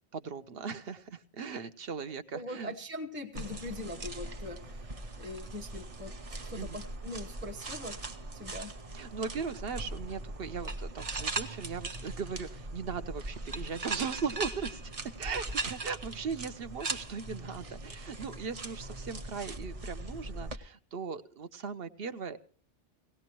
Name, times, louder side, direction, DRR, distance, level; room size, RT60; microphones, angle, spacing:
voice 1, 0.1-2.7 6.6-6.8 8.9-22.4, right 5 dB, 60° right, 11 dB, 1.0 m, -38 dB
voice 2, 2.3-8.7, left 1 dB, 10° right, 2 dB, 1.0 m, -42 dB
sound 1, 3.3-20.6, right 2 dB, 35° right, 0.8 m, -40 dB
18.0 x 17.5 x 3.0 m, 0.43 s
omnidirectional pair, 1.2 m